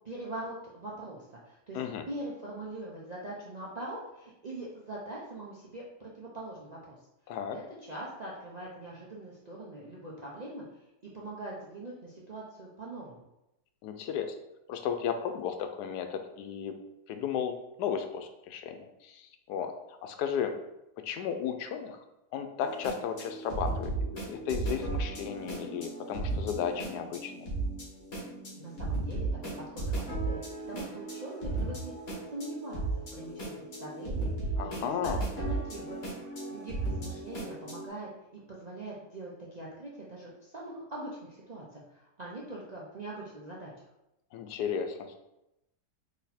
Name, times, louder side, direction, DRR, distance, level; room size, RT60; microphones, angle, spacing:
voice 1, 0.0-1.8 2.1-7.0 7.5-10.6 11.1-13.2 28.5-30.4 30.7-31.9 32.3-32.8 33.1-36.0 36.5-38.1 38.5-43.7, right 1 dB, 50° right, -5 dB, 0.5 m, -42 dB
voice 2, 1.7-2.1 7.3-7.6 13.8-14.3 14.7-16.8 17.1-20.5 21.0-22.0 22.3-27.5 34.6-35.2 44.3-45.2, left 8 dB, 85° left, 7 dB, 1.1 m, -34 dB
sound 1, 22.6-37.9, right 3 dB, 50° left, 1.6 m, -35 dB
4.2 x 3.0 x 4.1 m, 0.89 s
omnidirectional pair, 1.7 m